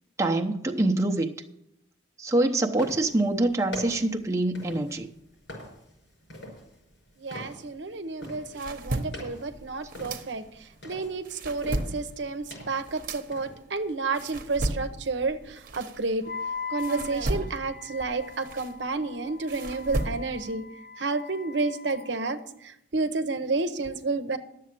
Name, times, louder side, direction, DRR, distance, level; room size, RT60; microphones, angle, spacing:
voice 1, 0.2-1.3 2.2-5.1 10.0-10.1, right 2 dB, 15° right, 0.8 m, -25 dB
sound 1, 2.7-13.6, left 1 dB, 80° left, 5.7 m, -45 dB
voice 2, 7.2-10.4 10.8-16.2 16.7-20.6 21.0-24.4, right 3 dB, 70° right, 0.8 m, -30 dB
sound 2, 8.2-10.7 11.1-16.4 16.8-20.5, right 1 dB, 50° right, 1.0 m, -35 dB
Wind instrument woodwind instrument, 16.2-22.4, left 6 dB, 50° left, 1.2 m, -41 dB
11.5 x 7.5 x 7.6 m
head